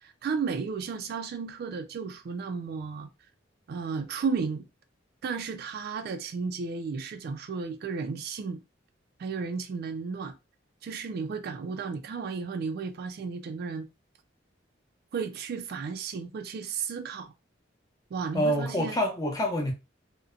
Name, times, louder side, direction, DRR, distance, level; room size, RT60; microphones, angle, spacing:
voice 1, 0.0-3.1 3.7-4.7 5.2-8.6 9.2-10.4 10.8-13.9 15.1-17.3 18.1-19.0, right 5 dB, 55° right, 0.3 m, -33 dB
voice 2, 18.3-19.7, equal, 20° left, 0.6 m, -27 dB
2.6 x 2.1 x 2.4 m
head